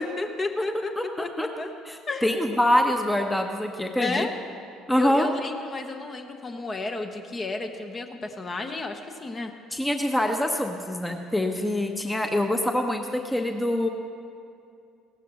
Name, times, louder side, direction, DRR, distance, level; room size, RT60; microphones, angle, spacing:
voice 1, 0.2-0.9 1.2-1.3 1.6-1.7 2.1-2.3 4.0-4.3 4.9-9.5, left 3 dB, 35° left, 5 dB, 1.1 m, -32 dB
voice 2, 1.0-1.5 1.9-4.3 4.9-5.3 9.7-13.9, left 1 dB, 10° left, 4 dB, 1.0 m, -25 dB
17.0 x 13.0 x 3.1 m, 2.4 s
figure-of-eight pair, 55°, 0 cm